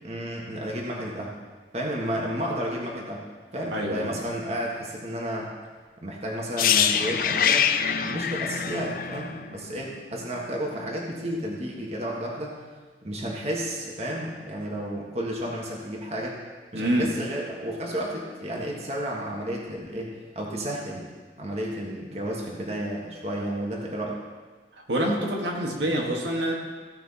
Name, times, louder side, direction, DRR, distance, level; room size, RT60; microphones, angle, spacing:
voice 1, 0.0-1.3 1.7-5.5 6.0-12.5 13.0-16.4 16.7-21.1 21.4-24.2, equal, 35° right, -2 dB, 1.5 m, -32 dB
voice 2, 3.7-4.1 16.7-17.1 24.9-26.5, right 1 dB, 85° right, -1 dB, 1.8 m, -26 dB
sound 1, 6.6-10.4 10.7-10.9, left 8 dB, 50° left, 0.4 m, -25 dB
16.0 x 5.9 x 4.2 m, 1.4 s
head